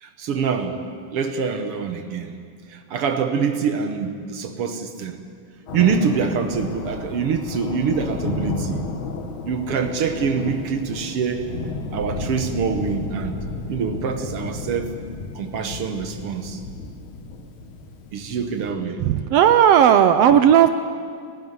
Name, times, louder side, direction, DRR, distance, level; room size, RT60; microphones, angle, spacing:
voice 1, 0.0-0.8 1.1-2.4 2.7-5.2 5.7-8.9 9.5-11.5 11.9-13.4 13.7-14.9 15.3-16.6 18.1-19.0, right 6 dB, 60° right, 7 dB, 1.6 m, -25 dB
Thunder, 5.7-18.7, left 3 dB, 65° left, 3.0 m, -32 dB
voice 2, 19.0-20.7, right 9 dB, 90° right, 10 dB, 1.4 m, -14 dB
29.0 x 12.0 x 9.6 m, 2.2 s
omnidirectional pair, 3.7 m